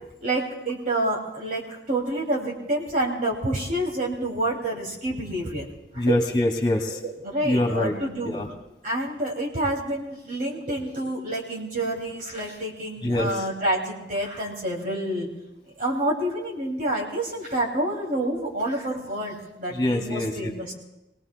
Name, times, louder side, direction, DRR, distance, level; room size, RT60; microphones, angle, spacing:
voice 1, 0.2-5.7 5.9-6.3 6.9-8.5 8.8-15.3 15.8-20.7, right 1 dB, 50° right, -2 dB, 2.6 m, -28 dB
voice 2, 6.0-7.0 7.4-7.9 8.2-8.5 13.0-13.4 19.7-20.3, left 1 dB, 25° left, 3 dB, 2.4 m, -24 dB
26.0 x 19.0 x 2.3 m, 0.95 s
head